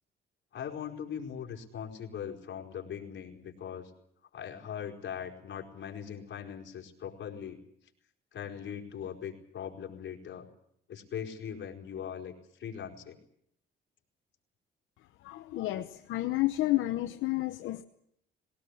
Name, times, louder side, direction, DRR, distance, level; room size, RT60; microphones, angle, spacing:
voice 1, 0.5-3.9 4.3-7.6 8.3-10.5 10.9-13.2, left 8 dB, 65° left, 1 dB, 4.5 m, -40 dB
voice 2, 15.2-17.8, left 17 dB, 90° left, 8 dB, 1.0 m, -30 dB
20.5 x 18.5 x 10.0 m, 0.72 s
cardioid pair, 90°, 20 cm